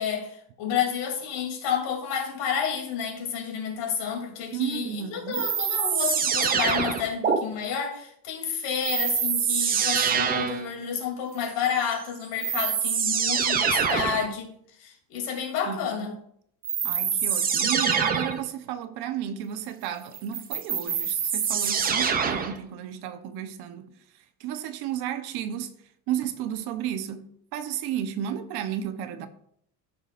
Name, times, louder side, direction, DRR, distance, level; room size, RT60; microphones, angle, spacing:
voice 1, 0.0-14.5 14.8-16.1, left 7 dB, 65° left, 2.9 m, -30 dB
voice 2, 4.5-5.5 15.7-16.1 16.8-23.9 24.4-25.7 26.1-29.3, right 10 dB, 55° right, 0.9 m, -33 dB
sound 1, 5.3-7.4 8.8-10.7 11.9-12.0 12.4-14.3 16.6-18.4 20.1-22.6, right 7 dB, 20° right, 0.5 m, -25 dB
14.5 x 6.3 x 2.5 m
cardioid pair, 155°, 46 cm